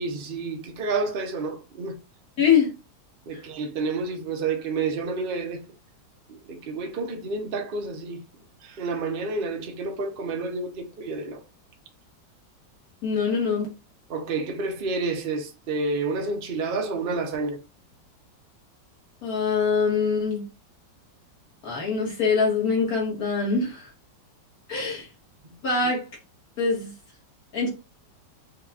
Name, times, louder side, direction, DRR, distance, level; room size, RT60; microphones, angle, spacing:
voice 1, 0.0-2.0 3.3-5.6 6.3-8.2 8.6-11.4 14.1-17.6 25.4-25.5, right 3 dB, 65° right, 0.5 m, -29 dB
voice 2, 2.4-2.7 3.3-3.4 13.0-13.7 19.2-20.5 21.6-23.9 24.7-25.1 25.6-26.1 26.6-26.9 27.5-27.7, left 5 dB, 55° left, 2.1 m, -24 dB
6.5 x 2.8 x 2.3 m
omnidirectional pair, 2.0 m